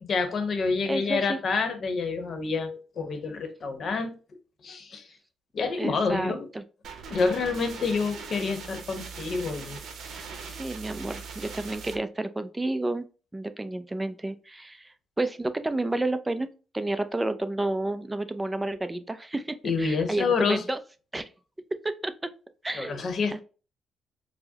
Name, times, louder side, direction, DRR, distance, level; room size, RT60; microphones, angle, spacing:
voice 1, 0.0-4.1 4.6-5.1 5.5-6.5 7.1-9.8 10.1-10.2 19.6-20.6 22.7-23.4, left 4 dB, 50° left, 0.8 m, -28 dB
voice 2, 0.9-1.4 5.8-6.6 10.4-13.1 13.3-16.5 16.7-20.8 21.1-21.3 21.8-22.3 22.6-23.0 23.3-23.4, right 2 dB, 15° right, 0.4 m, -31 dB
sound 1, 6.8-12.0, right 5 dB, 70° right, 0.7 m, -40 dB
4.6 x 2.0 x 2.7 m
cardioid pair, 90°, 0 cm